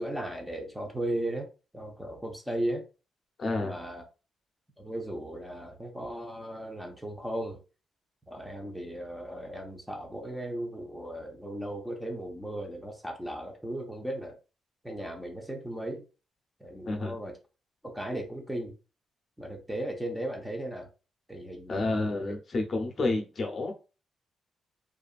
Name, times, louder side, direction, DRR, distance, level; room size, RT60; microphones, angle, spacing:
voice 1, 0.0-1.5 1.7-2.8 3.6-4.0 4.8-7.6 8.3-14.4 14.8-16.0 16.6-17.3 17.8-18.7 19.4-20.9 21.3-22.3, right 1 dB, 5° right, 0.6 m, -36 dB
voice 2, 3.4-3.7 16.8-17.1 21.7-23.7, left 2 dB, 45° left, 0.7 m, -29 dB
2.7 x 2.4 x 2.4 m
cardioid pair, 100°, 0 cm